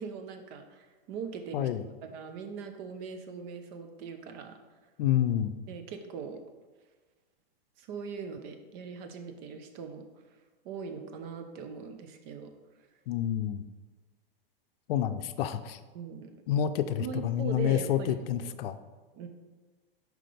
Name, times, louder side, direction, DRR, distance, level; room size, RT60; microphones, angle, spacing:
voice 1, 0.0-1.7 2.0-4.6 5.7-6.4 7.8-10.1 10.6-12.5 15.9-16.3 17.0-18.5 19.1-19.3, right 5 dB, 45° right, 7 dB, 0.9 m, -40 dB
voice 2, 5.0-5.5 13.1-13.6 14.9-15.8 16.5-18.8, left 10 dB, 70° left, 11 dB, 0.5 m, -28 dB
7.4 x 5.0 x 3.4 m, 1.3 s
hypercardioid pair, 125°, 30 cm